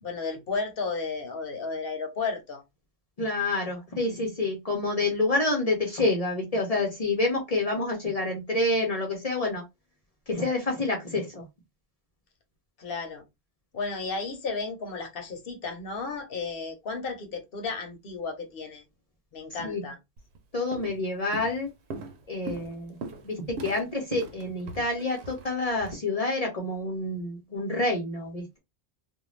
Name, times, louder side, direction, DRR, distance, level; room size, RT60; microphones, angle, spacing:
voice 1, 0.0-2.6 12.8-13.2 13.7-18.8 19.3-20.0, left 4 dB, 65° left, 1.0 m, -33 dB
voice 2, 3.2-9.6 10.3-11.4 19.6-19.8 20.5-21.7 22.3-28.6, left 2 dB, 40° left, 0.7 m, -28 dB
Walk footsteps, 20.2-20.4 20.7-21.0 21.3-25.9, right 3 dB, 90° right, 0.9 m, -40 dB
2.5 x 2.2 x 3.1 m
omnidirectional pair, 1.1 m